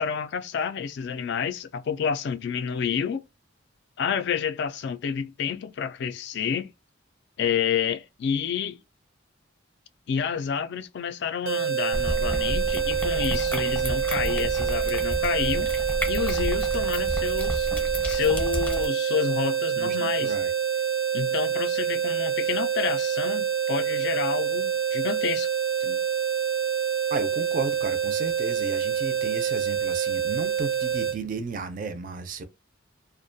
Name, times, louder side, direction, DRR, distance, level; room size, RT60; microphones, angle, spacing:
voice 1, 0.0-3.3 4.0-6.7 7.4-8.8 10.1-15.7 16.0-17.7 18.0-20.3 21.1-25.5 25.8-26.0, left 7 dB, 55° left, 0.3 m, -29 dB
sound 1, 11.4-31.2, right 8 dB, 90° right, 0.6 m, -26 dB
sound 2, 11.9-18.9, equal, 10° left, 0.6 m, -31 dB
voice 2, 19.8-20.5 27.1-32.4, right 4 dB, 40° right, 0.4 m, -33 dB
2.3 x 2.1 x 2.6 m
head